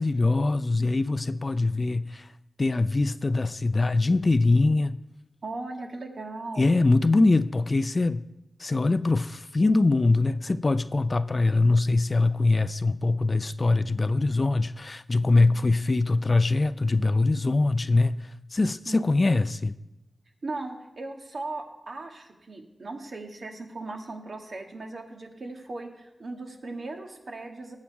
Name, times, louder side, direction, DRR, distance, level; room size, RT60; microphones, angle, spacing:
voice 1, 0.0-2.3 2.6-5.0 6.6-8.3 8.6-19.8, left 3 dB, 40° left, 0.4 m, -23 dB
voice 2, 5.4-6.8 15.3-15.5 18.8-19.0 20.4-27.8, right 2 dB, 65° right, 1.7 m, -38 dB
18.0 x 7.4 x 4.7 m
wide cardioid pair, 85°, 0 cm